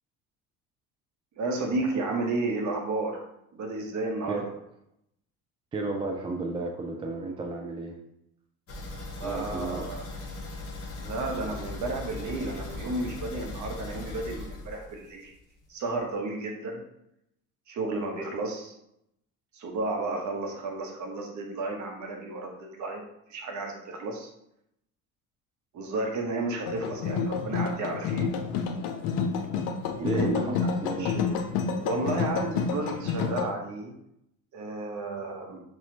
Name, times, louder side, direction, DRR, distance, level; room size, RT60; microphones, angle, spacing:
voice 1, 1.4-3.2 3.5-4.5 9.2-10.0 11.0-15.3 15.7-16.8 17.7-18.7 19.5-23.0 23.3-24.3 25.7-28.3 30.0-31.3 31.8-33.9 34.5-35.6, right 2 dB, 40° right, 2 dB, 1.0 m, -32 dB
voice 2, 5.7-8.0 9.2-9.9 30.0-30.5 30.8-31.1, right 2 dB, 15° right, 1 dB, 0.4 m, -32 dB
sound 1, 8.7-15.3 15.6-15.7 16.1-16.2, left 2 dB, 30° left, 1.0 m, -39 dB
sound 2, 26.7-33.5, left 5 dB, 55° left, 0.6 m, -29 dB
5.7 x 2.4 x 2.7 m, 0.78 s
figure-of-eight pair, 55°, 43 cm